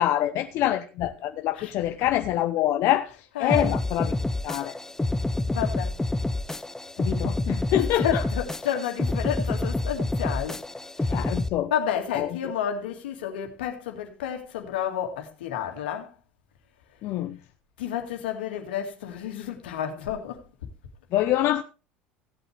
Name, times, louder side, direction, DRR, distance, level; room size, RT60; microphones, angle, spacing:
voice 1, 0.0-3.1 3.4-4.1 4.4-4.8 7.0-8.2 11.1-11.7 12.1-12.3 17.0-17.4 21.1-21.6, left 13 dB, 60° left, 0.7 m, -25 dB
voice 2, 3.1-3.8 5.5-6.0 7.7-10.6 11.0-11.3 11.7-16.1 17.8-20.4, left 9 dB, 85° left, 2.0 m, -31 dB
sound 1, 3.5-11.5, left 2 dB, 10° left, 0.9 m, -28 dB
16.5 x 8.3 x 3.3 m
hypercardioid pair, 80°, 5 cm